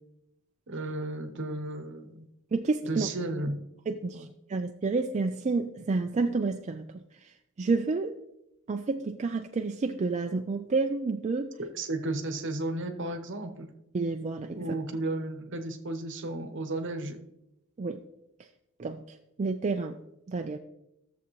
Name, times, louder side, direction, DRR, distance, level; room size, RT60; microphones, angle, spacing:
voice 1, 0.7-2.3 2.9-3.6 4.1-4.3 11.7-13.7 14.5-17.2, right 2 dB, 55° right, 6 dB, 1.0 m, -33 dB
voice 2, 2.5-3.1 3.9-6.9 7.2-8.2 8.7-11.5 13.9-14.8 17.8-18.0 18.8-20.0 20.3-20.6, right 3 dB, 30° right, 4 dB, 0.4 m, -30 dB
13.5 x 7.0 x 3.1 m, 0.85 s
head